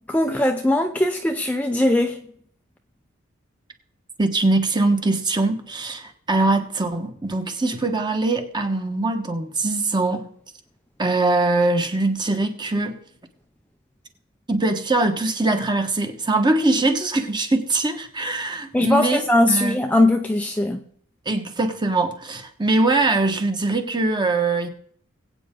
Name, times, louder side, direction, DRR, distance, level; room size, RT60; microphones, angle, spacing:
voice 1, 0.1-2.2 18.7-20.8, left 1 dB, 5° left, 0.6 m, -20 dB
voice 2, 4.2-10.3 11.0-12.9 14.5-19.2 19.5-19.8 21.2-24.7, right 2 dB, 20° right, 1.3 m, -22 dB
21.0 x 8.8 x 3.8 m
head